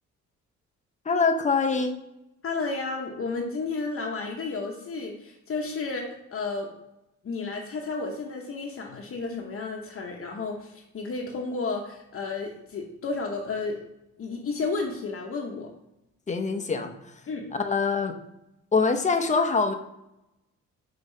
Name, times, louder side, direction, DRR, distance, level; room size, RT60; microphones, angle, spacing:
voice 1, 1.1-1.9 16.3-16.9 17.5-18.1 18.7-19.7, left 4 dB, 25° left, 6 dB, 0.8 m, -24 dB
voice 2, 2.4-6.7 7.2-13.8 14.2-15.7 17.3-17.5, left 3 dB, 45° left, 0 dB, 1.0 m, -32 dB
5.6 x 3.9 x 5.4 m, 0.88 s
cardioid pair, 90°, 30 cm